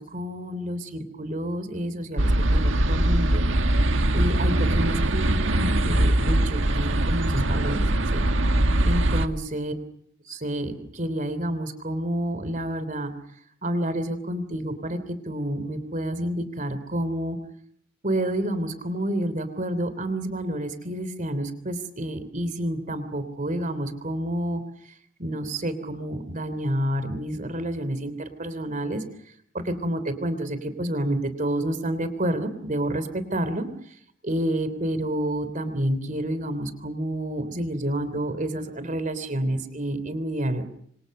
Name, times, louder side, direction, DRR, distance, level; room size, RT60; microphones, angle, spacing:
voice 1, 0.0-3.4 4.1-7.8 8.1-8.3 8.8-9.7 10.3-13.1 13.6-15.0 15.2-17.4 18.0-24.6 25.2-29.0 29.5-33.7 34.2-40.6, right 1 dB, 40° right, 11 dB, 3.3 m, -29 dB
sound 1, 2.2-9.3, right 1 dB, 75° right, 1.8 m, -22 dB
27.0 x 25.5 x 6.7 m, 0.68 s
head